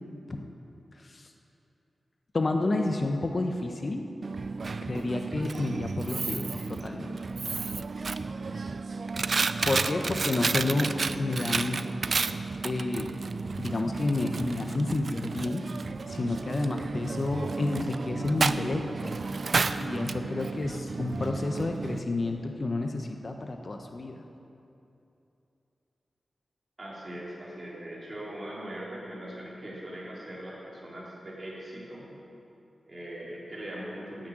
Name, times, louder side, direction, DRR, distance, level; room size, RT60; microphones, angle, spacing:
voice 1, 1.0-1.3 2.3-4.1 4.8-7.2 9.6-10.9 11.2-11.8 12.6-13.1 13.6-15.6 16.1-18.8 19.8-24.2, left 2 dB, 45° left, 4 dB, 0.9 m, -30 dB
Coin (dropping), 4.2-22.0, right 4 dB, 55° right, 0.4 m, -32 dB
voice 2, 26.8-32.1 32.9-34.3, right 1 dB, 30° right, -6 dB, 3.8 m, -40 dB
10.0 x 8.7 x 8.8 m, 2.8 s
wide cardioid pair, 95°, 0 cm